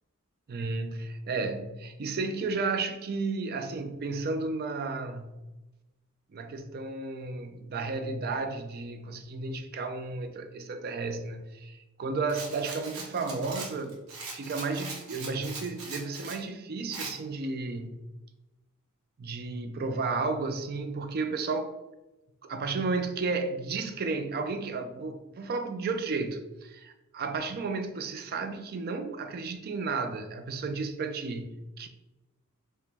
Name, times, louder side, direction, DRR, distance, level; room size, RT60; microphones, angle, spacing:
voice 1, 0.5-5.4 6.3-14.0 14.3-18.0 19.2-21.7 22.4-31.9, right 3 dB, 45° right, 0.4 m, -33 dB
Rattle, 12.3-16.4 16.9-17.1, right 3 dB, 85° right, 1.0 m, -41 dB
4.9 x 2.1 x 3.3 m
head